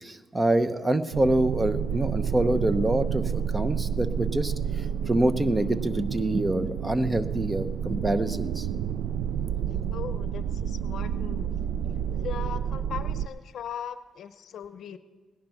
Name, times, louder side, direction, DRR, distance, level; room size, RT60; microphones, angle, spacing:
voice 1, 0.0-4.5 5.1-8.7, right 1 dB, 20° right, 12 dB, 0.9 m, -26 dB
sound 1, 1.1-13.3, right 8 dB, 80° right, 0.4 m, -30 dB
voice 2, 9.9-11.5 12.1-15.0, left 8 dB, 65° left, 12 dB, 0.7 m, -39 dB
17.5 x 10.5 x 5.8 m, 1.3 s
cardioid pair, 90°, 0 cm